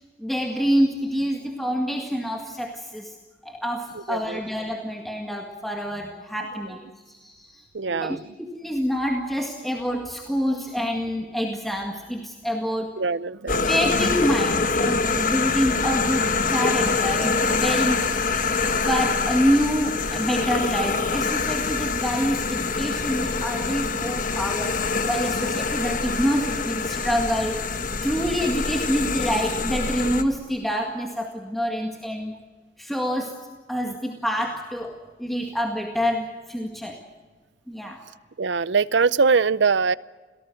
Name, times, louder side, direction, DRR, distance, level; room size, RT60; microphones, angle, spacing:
voice 1, 0.2-3.1 3.4-6.8 7.1-8.2 8.5-13.0 13.6-18.0 18.8-27.6 28.0-32.3 32.8-37.0 37.7-38.0, equal, ahead, 2 dB, 1.9 m, -27 dB
voice 2, 3.9-4.4 7.7-8.3 13.0-13.7 38.4-39.9, right 5 dB, 80° right, 19 dB, 0.7 m, -22 dB
sound 1, 13.5-30.2, left 4 dB, 45° left, 1.5 m, -25 dB
27.5 x 18.0 x 7.8 m, 1.3 s
head